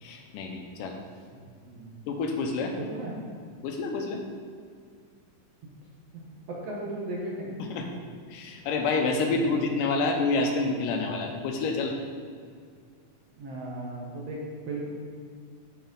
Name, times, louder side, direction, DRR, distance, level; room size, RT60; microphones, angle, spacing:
voice 1, 0.0-1.0 2.1-2.7 3.6-4.2 7.6-7.9 8.3-11.9, left 3 dB, 80° left, 3 dB, 2.3 m, -28 dB
voice 2, 1.3-1.9 2.8-3.2 6.1-6.2 6.6-7.5 9.3-9.5 13.4-14.4 14.7-14.8, right 2 dB, 60° right, -4 dB, 1.9 m, -36 dB
8.4 x 6.9 x 3.9 m, 2.1 s
omnidirectional pair, 3.9 m